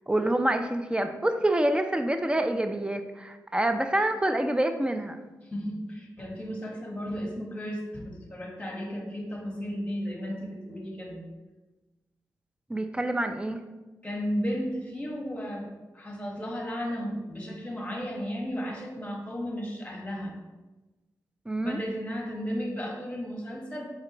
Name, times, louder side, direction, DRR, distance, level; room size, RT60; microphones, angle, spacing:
voice 1, 0.1-5.2 12.7-13.6 21.5-21.8, right 1 dB, 15° right, 8 dB, 0.4 m, -27 dB
voice 2, 5.5-11.2 14.0-20.3 21.6-23.8, equal, 15° left, 0 dB, 1.2 m, -34 dB
4.3 x 3.8 x 2.9 m, 1.2 s
supercardioid pair, 40°, 8 cm